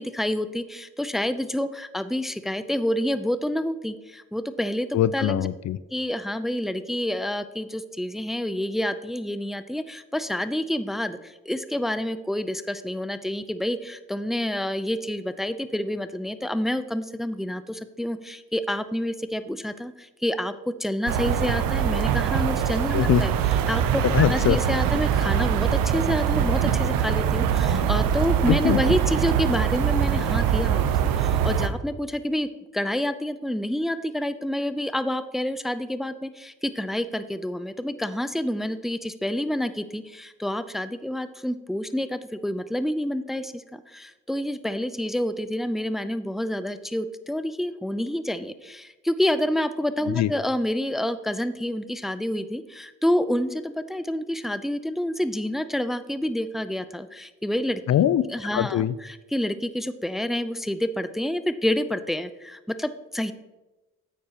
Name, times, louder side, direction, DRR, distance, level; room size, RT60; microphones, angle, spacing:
voice 1, 0.0-5.5 5.9-23.3 23.7-57.8 58.3-63.3, left 1 dB, ahead, 13 dB, 0.5 m, -28 dB
voice 2, 4.9-5.8 22.9-23.2 24.0-24.6 28.5-28.8 50.1-50.3 57.9-58.2 58.5-58.9, left 11 dB, 55° left, 16 dB, 0.4 m, -22 dB
sound 1, 21.1-31.7, right 8 dB, 85° right, 0.7 m, -23 dB
9.3 x 8.4 x 2.9 m, 1.1 s
supercardioid pair, 55°, 33 cm